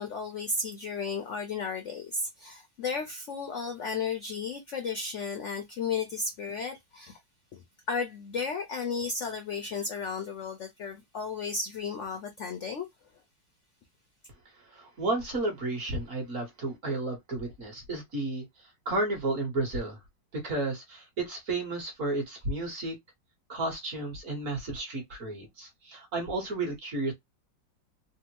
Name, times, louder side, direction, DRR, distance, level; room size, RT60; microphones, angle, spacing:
voice 1, 0.0-7.2 7.5-7.6 7.9-12.9, left 4 dB, 75° left, 0.6 m, -34 dB
voice 2, 14.6-20.0 20.3-22.9 23.5-27.1, right 2 dB, 50° right, 1.3 m, -32 dB
3.5 x 2.1 x 2.8 m
omnidirectional pair, 2.0 m